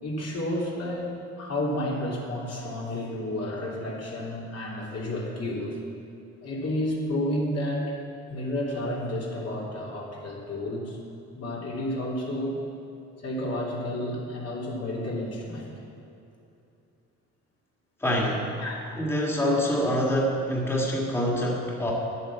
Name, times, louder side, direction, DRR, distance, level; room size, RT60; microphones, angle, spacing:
voice 1, 0.0-5.8 6.4-8.0 8.3-11.0 11.3-12.6 13.2-15.7 18.6-18.8, left 1 dB, 55° left, -3 dB, 3.1 m, -31 dB
voice 2, 18.0-18.5 19.0-21.9, equal, 10° left, -3 dB, 2.0 m, -25 dB
10.5 x 8.7 x 7.3 m, 2.7 s
cardioid pair, 90°, 30 cm